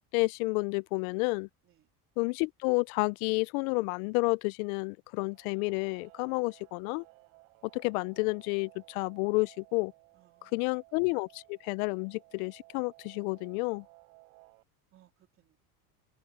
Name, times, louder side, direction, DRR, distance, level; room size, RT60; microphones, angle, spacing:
voice 1, 0.0-1.5 2.2-7.0 7.7-9.9 10.5-13.8, left 28 dB, 75° left, 0.5 m, -30 dB
Guitar, 5.2-14.6, right 28 dB, 90° right, 5.6 m, -59 dB
voice 2, 10.1-10.8 14.9-15.6, right 13 dB, 30° right, 3.3 m, -65 dB
cardioid pair, 175°, 43 cm